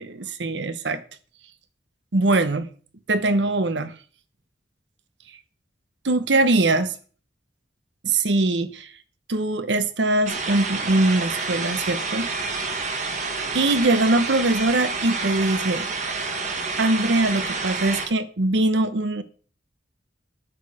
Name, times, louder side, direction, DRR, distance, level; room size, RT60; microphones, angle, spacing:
voice 1, 0.0-1.0 2.1-2.7 3.1-3.9 6.0-6.9 8.0-8.9 9.3-12.3 13.5-15.9 16.8-19.2, right 2 dB, 85° right, 1.0 m, -22 dB
sound 1, 10.3-18.1, right 4 dB, 40° right, 1.4 m, -28 dB
9.0 x 8.6 x 4.9 m
head